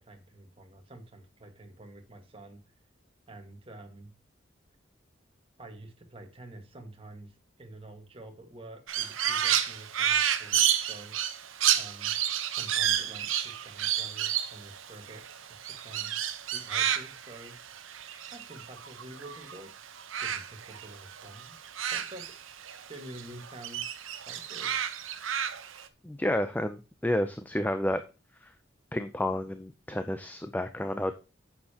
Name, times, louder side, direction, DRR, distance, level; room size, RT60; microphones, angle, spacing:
voice 1, 0.0-2.6 3.3-4.1 5.6-11.2 11.7-12.2 12.5-15.2 15.6-16.2 16.5-17.6 18.3-19.7 20.2-21.6 21.9-22.4 22.9-23.9 24.2-24.8, right 1 dB, 30° right, 3 dB, 1.6 m, -48 dB
Crow, 8.9-19.6 19.8-22.8 23.2-25.9, right 10 dB, 85° right, 0.9 m, -30 dB
voice 2, 26.0-28.0 28.4-28.5 28.9-31.1, left 1 dB, 10° left, 9 dB, 0.5 m, -30 dB
9.6 x 6.8 x 2.9 m, 0.30 s
head